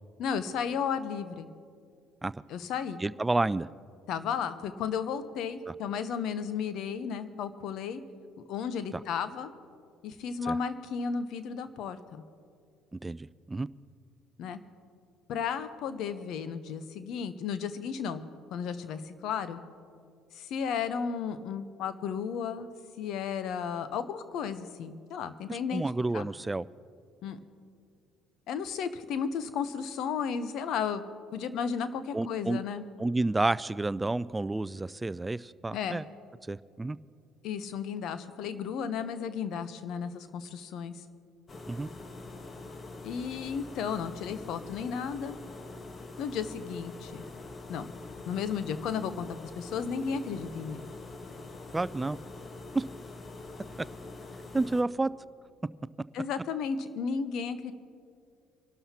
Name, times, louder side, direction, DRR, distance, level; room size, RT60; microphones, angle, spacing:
voice 1, 0.2-1.5 2.5-3.0 4.1-8.0 8.5-9.5 10.0-12.2 14.4-14.6 15.3-18.3 18.5-19.6 20.3-22.7 23.0-25.8 26.1-26.3 27.2-27.4 28.5-31.0 31.3-32.9 35.7-36.0 37.4-41.0 43.0-45.4 46.2-47.3 47.7-47.9 48.3-49.3 49.6-50.9 56.1-57.7, left 6 dB, 65° left, 12 dB, 0.8 m, -34 dB
voice 2, 3.0-3.7 8.9-9.0 10.5-10.6 12.9-13.7 25.5-26.7 32.1-32.6 33.0-36.0 36.5-37.0 41.7-41.9 51.7-52.2 52.7-52.8 54.5-55.1, right 2 dB, 15° right, 18 dB, 0.3 m, -30 dB
sound 1, 41.5-54.8, left 2 dB, 35° left, 1.2 m, -44 dB
26.5 x 12.0 x 2.9 m, 2.3 s
hypercardioid pair, 65°, 0 cm